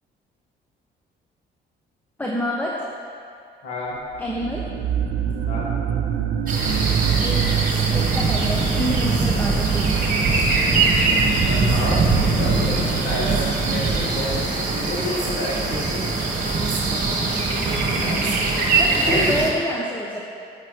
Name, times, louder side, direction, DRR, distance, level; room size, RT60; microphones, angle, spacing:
voice 1, 2.2-2.8 4.2-4.6 7.2-7.4 7.9-10.0 18.8-20.3, equal, 10° left, -3 dB, 0.9 m, -27 dB
voice 2, 3.6-4.0 5.4-5.7 11.5-16.1 18.0-18.2 19.0-19.3, left 2 dB, 85° left, -6 dB, 2.1 m, -29 dB
sound 1, 4.1-14.8, right 8 dB, 85° right, 0.6 m, -26 dB
sound 2, 6.5-19.5, right 3 dB, 45° right, 1.8 m, -22 dB
8.9 x 8.2 x 3.3 m, 2.4 s
cardioid pair, 90°, 20 cm